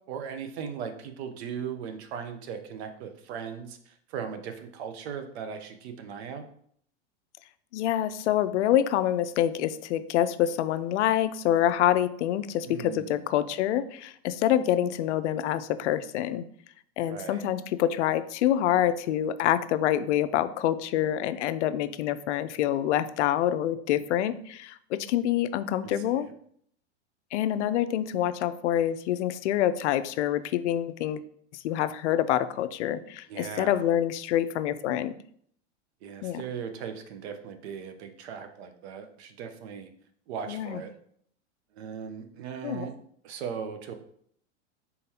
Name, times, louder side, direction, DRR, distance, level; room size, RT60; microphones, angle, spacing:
voice 1, 0.1-6.4 12.7-13.2 17.1-17.4 26.1-26.3 33.3-33.9 36.0-39.9 40.3-40.9 41.7-42.9 43.2-43.9, right 7 dB, 65° right, 7 dB, 0.7 m, -38 dB
voice 2, 7.7-16.5 17.0-26.3 27.3-31.2 31.6-35.1 36.2-36.4 40.5-40.8 42.6-42.9, left 11 dB, 80° left, 13 dB, 0.5 m, -26 dB
4.1 x 3.8 x 2.8 m, 0.63 s
supercardioid pair, 135°, 35 cm